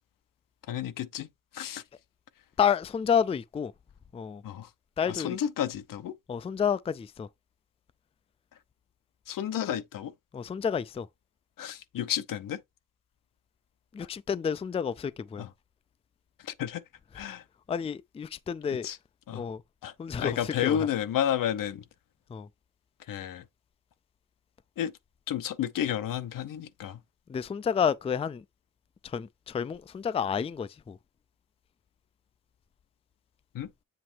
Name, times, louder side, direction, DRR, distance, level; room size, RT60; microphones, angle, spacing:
voice 1, 0.7-1.3 1.5-1.8 4.4-4.7 5.1-6.1 9.3-10.1 11.6-12.6 14.0-14.1 15.4-15.5 16.4-16.8 17.1-17.4 18.7-19.0 19.3-19.4 19.8-21.8 23.1-23.4 24.8-24.9 25.3-27.0 33.5-33.7, left 10 dB, 80° left, 0.8 m, -31 dB
voice 2, 2.6-3.7 4.1-4.4 5.0-5.4 6.3-7.3 10.3-11.1 13.9-15.4 17.7-18.9 19.4-19.6 20.0-20.3 20.6-20.8 22.3-22.5 27.3-28.4 29.1-31.0, left 7 dB, 20° left, 0.3 m, -29 dB
7.7 x 3.1 x 4.4 m
wide cardioid pair, 150°, 32 cm